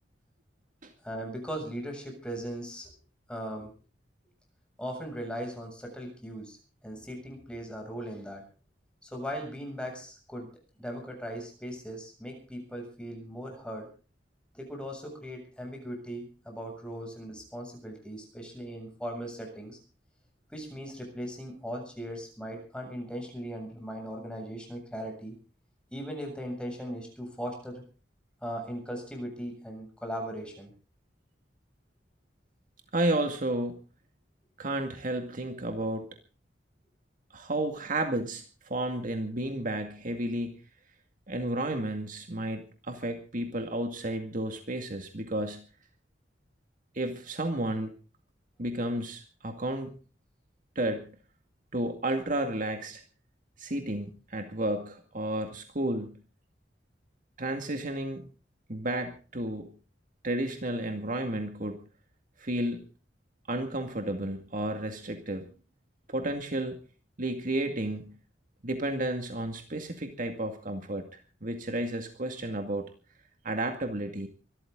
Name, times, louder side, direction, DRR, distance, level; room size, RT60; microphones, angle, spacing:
voice 1, 1.0-2.9 3.3-3.7 4.8-6.6 6.8-8.4 9.0-10.5 10.8-13.9 14.5-19.8 20.5-25.3 25.9-27.8 28.4-30.7, equal, 5° left, 2 dB, 7.5 m, -38 dB
voice 2, 32.9-33.8 34.6-36.1 37.3-40.5 41.3-45.6 46.9-47.9 48.6-49.9 50.8-51.1 51.7-53.0 53.6-56.2 57.4-58.2 58.7-59.7 60.2-61.8 62.4-62.8 63.5-65.5 66.1-66.8 67.2-68.2 68.6-71.1 71.4-72.9 73.4-74.3, right 1 dB, 50° right, 6 dB, 2.2 m, -32 dB
24.5 x 13.5 x 3.9 m, 0.38 s
head